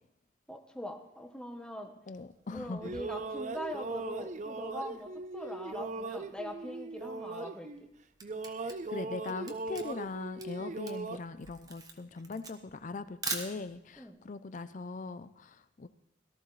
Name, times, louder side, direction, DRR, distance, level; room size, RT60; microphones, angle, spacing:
voice 1, 0.5-1.9 2.5-7.9 10.6-10.7 14.0-14.2, equal, 5° left, 3 dB, 1.0 m, -42 dB
voice 2, 2.1-3.0 8.6-15.9, left 3 dB, 40° left, 12 dB, 0.5 m, -41 dB
sound 1, 2.6-7.9 8.2-11.2, right 3 dB, 40° right, 0.6 m, -39 dB
Camera, 7.7-14.0, right 4 dB, 20° right, 1.2 m, -42 dB
18.0 x 13.5 x 3.2 m, 0.82 s
head